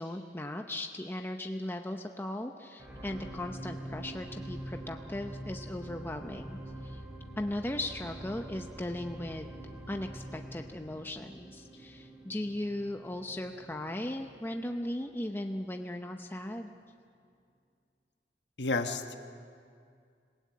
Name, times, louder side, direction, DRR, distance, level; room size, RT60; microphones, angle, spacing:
voice 1, 0.0-7.0 7.4-9.5 9.9-16.7, left 1 dB, 15° left, 4 dB, 0.8 m, -37 dB
sound 1, 2.8-15.2 15.8-15.9, right 1 dB, 15° right, 5.2 m, -45 dB
voice 2, 18.6-19.2, left 3 dB, 70° left, 6 dB, 1.3 m, -31 dB
27.0 x 17.5 x 8.4 m, 2.3 s
head